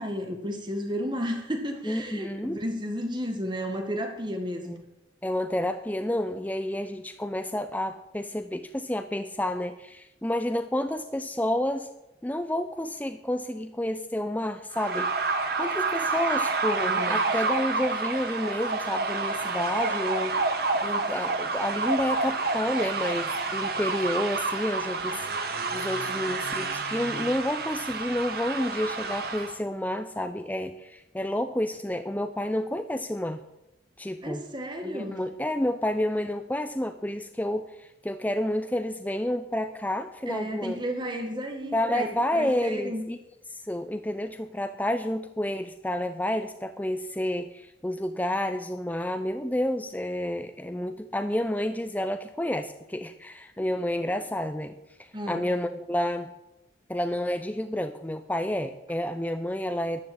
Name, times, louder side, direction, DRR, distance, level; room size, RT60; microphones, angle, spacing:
voice 1, 0.0-4.8 16.0-16.1 16.8-17.2 34.2-35.2 40.3-42.1 42.3-43.0 53.6-53.7 55.1-55.5, equal, 25° right, 4 dB, 1.8 m, -33 dB
voice 2, 1.8-2.6 4.6-4.8 5.2-11.9 12.2-15.1 15.6-20.4 20.8-25.3 25.7-33.4 34.0-34.4 34.8-40.8 41.7-43.2 43.7-56.3 56.9-60.0, left 1 dB, 10° left, 8 dB, 0.5 m, -30 dB
sound 1, 14.7-29.6, right 3 dB, 55° right, 1.5 m, -29 dB
11.5 x 10.5 x 8.7 m, 0.95 s
head